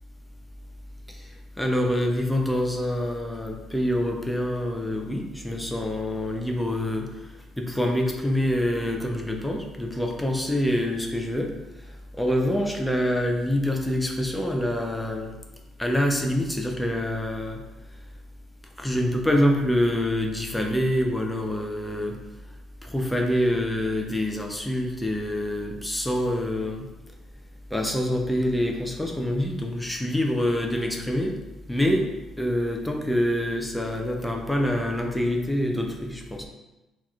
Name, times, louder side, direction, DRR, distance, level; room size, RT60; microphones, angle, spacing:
voice 1, 1.6-7.2 7.6-11.5 12.1-15.3 15.8-17.6 18.8-22.2 22.8-26.9 27.7-31.4 31.7-32.1 32.4-36.5, left 1 dB, 5° left, 2 dB, 0.6 m, -26 dB
6.1 x 3.0 x 2.4 m, 1.0 s
cardioid pair, 125°, 0 cm